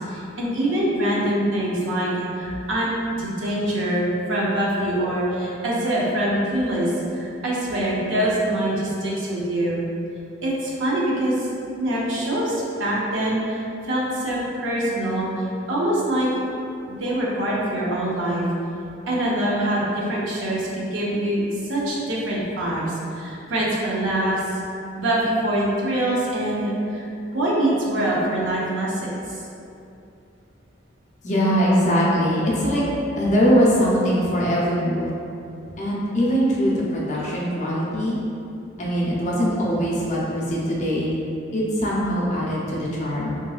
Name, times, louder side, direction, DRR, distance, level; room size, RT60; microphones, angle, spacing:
voice 1, 0.1-9.8 10.4-11.5 11.8-16.3 17.0-18.4 19.1-21.4 21.7-24.4 25.0-27.0 27.3-29.4, right 1 dB, 75° right, -5 dB, 0.7 m, -24 dB
voice 2, 31.2-32.8 33.2-35.1 35.8-38.2 38.8-41.1 41.5-43.4, equal, 40° left, -6 dB, 0.6 m, -21 dB
3.7 x 2.6 x 2.3 m, 2.7 s
head